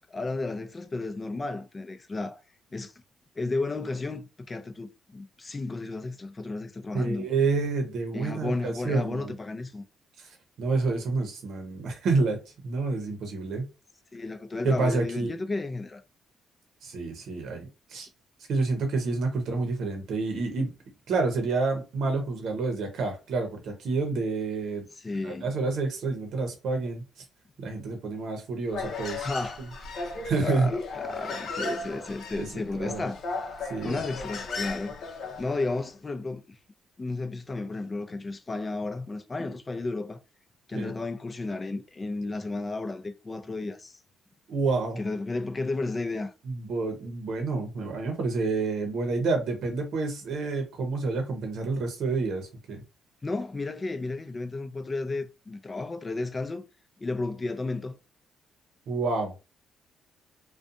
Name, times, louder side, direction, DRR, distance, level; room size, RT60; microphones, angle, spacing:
voice 1, 0.1-2.4 2.7-2.9 3.4-7.3 8.1-9.8 14.1-16.0 24.9-25.5 29.2-29.7 30.4-33.2 33.8-34.9 35.4-36.6 37.0-40.2 40.7-44.0 45.0-46.3 53.2-56.6 57.0-58.0, left 3 dB, 25° left, 0.5 m, -33 dB
voice 2, 6.9-9.3 10.2-12.4 12.6-13.7 14.6-15.3 16.8-18.1 18.5-20.7 21.1-24.8 25.2-27.2 27.6-29.3 29.6-29.7 30.2-30.7 32.4-33.0 33.7-34.0 40.7-40.9 44.5-45.0 46.5-52.8 58.9-59.3, right 3 dB, 70° right, 0.7 m, -29 dB
Human voice, 28.7-35.8, left 3 dB, 65° left, 0.7 m, -35 dB
2.4 x 2.2 x 2.6 m
cardioid pair, 90°, 0 cm